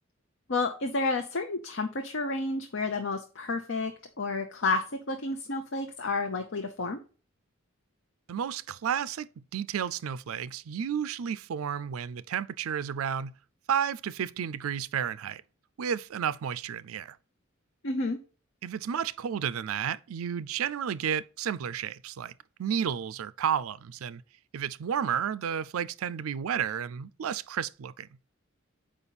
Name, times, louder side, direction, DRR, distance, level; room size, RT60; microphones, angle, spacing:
voice 1, 0.5-7.0 17.8-18.2, left 3 dB, 65° left, 0.7 m, -30 dB
voice 2, 8.3-13.3 13.7-15.4 15.8-17.2 18.6-22.3 22.6-24.2 24.5-28.1, right 8 dB, 90° right, 0.4 m, -32 dB
7.0 x 5.1 x 4.1 m
head